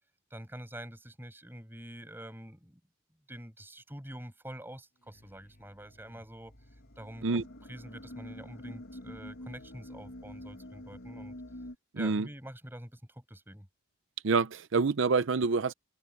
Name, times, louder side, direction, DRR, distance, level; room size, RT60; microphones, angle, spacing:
voice 1, 0.3-2.8 3.3-6.5 7.0-7.4 7.7-11.4 11.9-13.7, right 1 dB, 10° right, 5.8 m, -46 dB
sound 1, 4.9-11.3, equal, 45° left, 7.1 m, -61 dB
sound 2, 6.5-11.7, left 1 dB, 85° left, 2.0 m, -46 dB
voice 2, 11.9-12.3 14.2-15.7, right 4 dB, 75° right, 0.6 m, -27 dB
open air
head